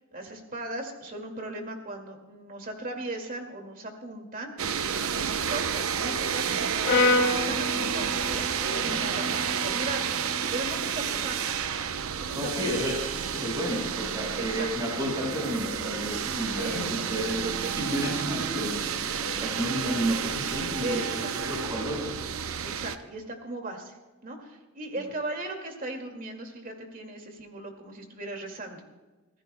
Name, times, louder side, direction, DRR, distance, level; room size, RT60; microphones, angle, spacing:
voice 1, 0.1-4.5 5.1-10.2 10.5-11.5 12.2-12.8 14.4-14.7 16.5-17.1 17.4-17.7 20.8-21.6 22.6-23.9 24.2-28.8, right 2 dB, 40° right, 3 dB, 2.2 m, -38 dB
sound 1, 4.6-23.0, right 7 dB, 80° right, 0.7 m, -30 dB
Brass instrument, 6.8-11.1, left 2 dB, 60° left, 1.4 m, -29 dB
voice 2, 12.3-13.0 13.3-22.1 24.9-25.0, equal, 20° right, -1 dB, 5.0 m, -31 dB
25.0 x 15.5 x 2.2 m, 1.2 s
head